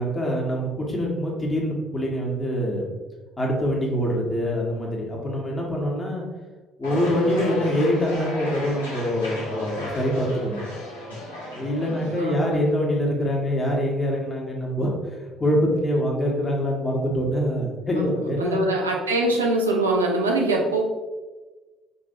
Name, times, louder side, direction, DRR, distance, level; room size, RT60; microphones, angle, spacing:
voice 1, 0.0-2.9 3.4-6.2 6.8-10.6 11.5-14.9 15.4-18.6, equal, 25° left, -2 dB, 1.4 m, -24 dB
sound 1, 6.8-12.2, left 1 dB, 90° left, 0.9 m, -35 dB
voice 2, 11.8-12.6 18.0-20.8, right 2 dB, 90° right, 0 dB, 0.5 m, -24 dB
5.3 x 3.2 x 2.6 m, 1.2 s
hypercardioid pair, 55°, 0 cm